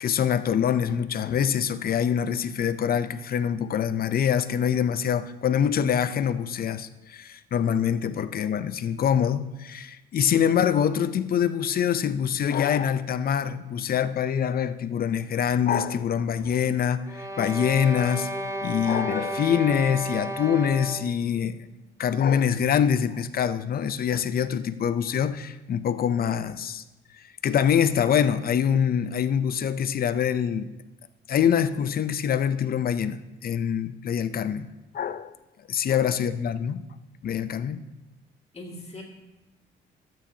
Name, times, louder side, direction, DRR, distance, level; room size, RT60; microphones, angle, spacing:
voice 1, 0.0-18.3 18.6-21.6 22.0-26.8 27.4-30.7 31.3-34.7 34.9-35.3 35.7-36.8 37.2-37.8, left 8 dB, 50° left, 0.5 m, -25 dB
sound 1, 17.1-21.2, equal, 15° right, 0.8 m, -33 dB
voice 2, 38.5-39.0, left 2 dB, 30° left, 2.4 m, -40 dB
12.5 x 9.0 x 2.8 m
cardioid pair, 90°, 20 cm